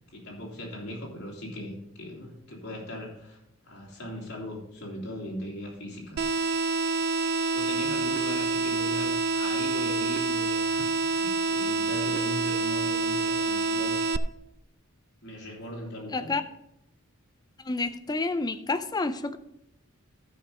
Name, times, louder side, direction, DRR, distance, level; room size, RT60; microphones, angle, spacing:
voice 1, 0.1-3.4 3.6-6.2 7.5-14.0 15.2-16.3, equal, 50° left, -2 dB, 2.9 m, -39 dB
sound 1, 6.2-14.2, right 3 dB, 45° right, 0.4 m, -27 dB
voice 2, 16.1-16.4 17.7-19.4, left 3 dB, 20° left, 11 dB, 0.5 m, -29 dB
13.0 x 5.6 x 5.0 m, 0.84 s
head